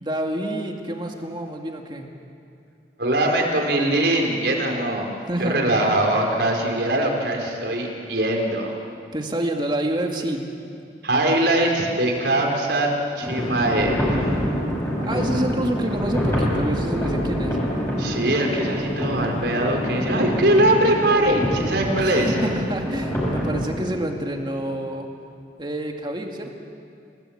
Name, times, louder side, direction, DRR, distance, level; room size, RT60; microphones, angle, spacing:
voice 1, 0.0-2.1 5.3-5.9 9.1-10.5 15.0-17.6 22.0-25.1 25.6-26.5, right 1 dB, 25° right, 2 dB, 2.3 m, -28 dB
voice 2, 3.0-5.1 5.4-8.7 11.0-13.9 18.0-22.3, right 1 dB, 70° right, 1 dB, 4.6 m, -21 dB
sound 1, 13.2-23.7, equal, 15° left, 6.4 m, -26 dB
28.5 x 18.5 x 8.7 m, 2.5 s
head